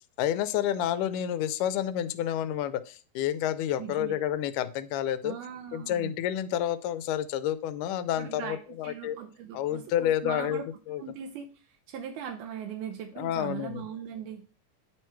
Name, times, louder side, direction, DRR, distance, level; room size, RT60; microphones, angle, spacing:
voice 1, 0.2-5.4 5.7-9.2 9.5-10.6 10.9-11.0 13.2-13.8, left 11 dB, 90° left, 14 dB, 2.1 m, -29 dB
voice 2, 3.8-4.2 5.2-6.2 8.2-10.7 11.0-14.5, right 8 dB, 80° right, 3 dB, 2.2 m, -40 dB
9.3 x 3.1 x 4.5 m, 0.37 s
omnidirectional pair, 3.6 m